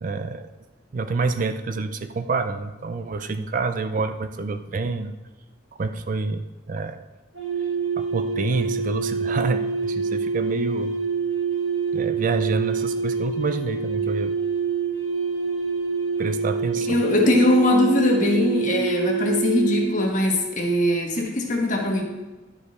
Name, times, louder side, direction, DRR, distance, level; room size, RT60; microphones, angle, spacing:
voice 1, 0.0-0.5 0.9-5.1 5.8-7.0 8.0-11.0 11.9-14.4 16.2-17.0, right 3 dB, 40° right, 9 dB, 0.4 m, -27 dB
sound 1, 7.3-20.1, right 5 dB, 65° right, 2.4 m, -26 dB
voice 2, 16.9-22.0, left 2 dB, 40° left, 1 dB, 1.3 m, -21 dB
11.0 x 4.9 x 4.1 m, 1.1 s
head